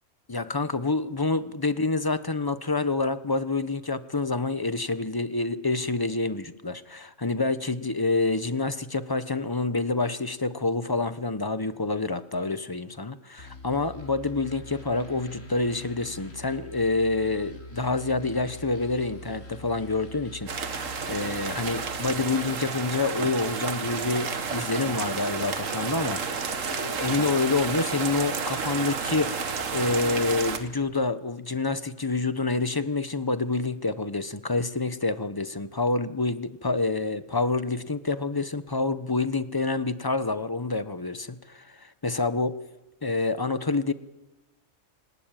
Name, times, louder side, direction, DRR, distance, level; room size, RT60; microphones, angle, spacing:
voice 1, 0.3-42.5 43.0-43.9, left 3 dB, 20° left, 12 dB, 0.9 m, -27 dB
sound 1, 13.4-30.7, left 1 dB, 90° left, 4.0 m, -45 dB
sound 2, 20.5-30.6, right 5 dB, 85° right, 1.8 m, -31 dB
24.0 x 19.0 x 9.1 m, 1.0 s
omnidirectional pair, 1.3 m